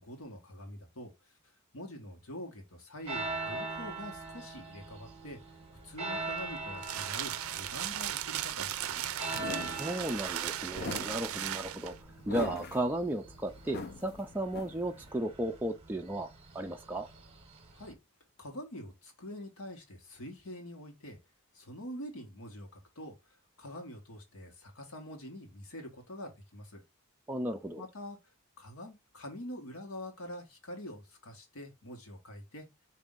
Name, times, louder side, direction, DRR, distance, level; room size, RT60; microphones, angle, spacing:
voice 1, 0.0-1.4 1.7-5.4 5.8-9.1 17.7-18.0 18.4-21.2 21.5-23.1 23.6-26.8 27.8-28.2 28.6-32.7, left 1 dB, 85° left, 1.3 m, -45 dB
sound 1, 3.1-17.9, right 3 dB, 30° right, 0.9 m, -43 dB
sound 2, 6.3-12.0, right 11 dB, 75° right, 0.4 m, -37 dB
sound 3, 8.5-15.1, left 3 dB, 50° left, 0.5 m, -43 dB
voice 2, 9.5-11.9 12.3-17.1 27.3-27.8, right 1 dB, 10° right, 0.3 m, -35 dB
4.1 x 2.6 x 3.6 m
head